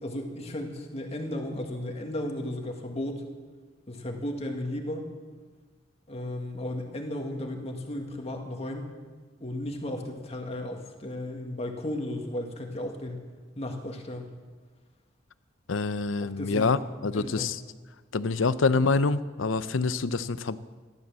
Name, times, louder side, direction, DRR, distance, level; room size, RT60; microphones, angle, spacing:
voice 1, 0.0-3.2 3.9-5.1 6.1-8.9 9.4-13.2 13.6-14.3 16.2-16.8 17.1-17.5, left 1 dB, 35° left, 2 dB, 2.1 m, -34 dB
voice 2, 15.7-17.6 18.1-20.6, left 4 dB, 85° left, 15 dB, 0.7 m, -26 dB
15.0 x 12.5 x 7.5 m, 1.4 s
head